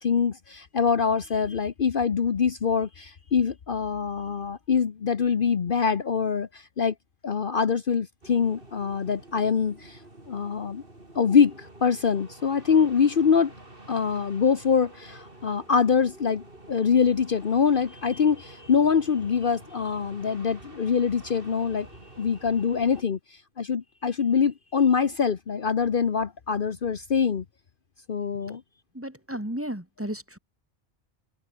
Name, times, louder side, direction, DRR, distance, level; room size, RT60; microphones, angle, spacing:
voice 1, 0.0-6.9 7.2-10.0 10.3-10.8 11.1-13.5 13.9-21.9 22.2-23.2 23.6-27.4 28.1-28.6, left 6 dB, 55° left, 1.1 m, -24 dB
sound 1, 8.2-23.0, right 2 dB, 55° right, 5.0 m, -48 dB
voice 2, 28.9-30.4, equal, 10° right, 2.8 m, -34 dB
omnidirectional pair, 1.1 m